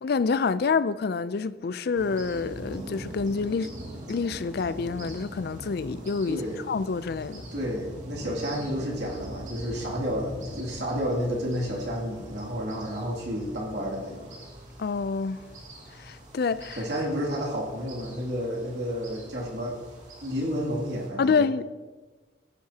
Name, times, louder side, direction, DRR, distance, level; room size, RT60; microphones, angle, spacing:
voice 1, 0.0-3.7 4.1-6.4 6.7-7.4 14.8-15.4 16.0-16.8 21.2-21.7, left 5 dB, 55° left, 0.4 m, -27 dB
sound 1, 1.9-21.1, equal, 40° right, 2.2 m, -42 dB
voice 2, 6.3-6.6 7.5-14.4 16.8-19.8 20.2-21.5, equal, 60° right, 2.6 m, -31 dB
15.0 x 10.5 x 2.8 m
head